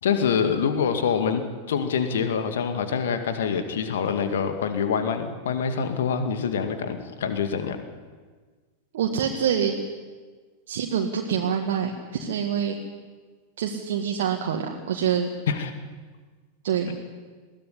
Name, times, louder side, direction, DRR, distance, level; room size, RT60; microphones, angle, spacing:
voice 1, 0.0-1.4 1.7-7.8 15.5-15.7, left 6 dB, 60° left, 7 dB, 2.2 m, -25 dB
voice 2, 8.9-9.7 10.7-12.8 13.6-15.3 16.6-17.0, right 8 dB, 60° right, 1 dB, 1.9 m, -26 dB
21.5 x 17.0 x 9.8 m, 1.4 s
figure-of-eight pair, 90°, 0 cm